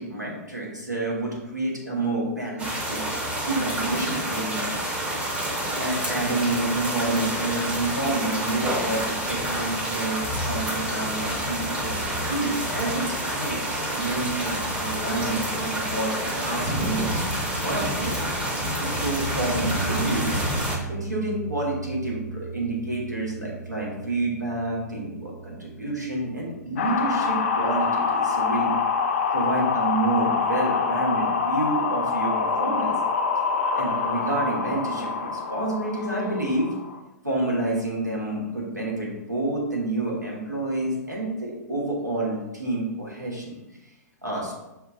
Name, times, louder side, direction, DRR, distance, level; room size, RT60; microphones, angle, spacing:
voice 1, 0.0-3.0 3.5-4.8 5.8-18.2 18.8-20.4 20.9-28.7 29.3-32.9 33.7-36.7 37.2-43.6 44.2-44.5, right 2 dB, 90° right, -4 dB, 1.4 m, -29 dB
sound 1, 2.6-20.8, right 1 dB, 10° right, 0.6 m, -28 dB
sound 2, 19.6-29.8, right 6 dB, 60° right, 1.1 m, -38 dB
sound 3, 26.8-37.0, left 5 dB, 45° left, 0.4 m, -25 dB
6.3 x 2.4 x 2.6 m, 0.94 s
figure-of-eight pair, 110°, 9 cm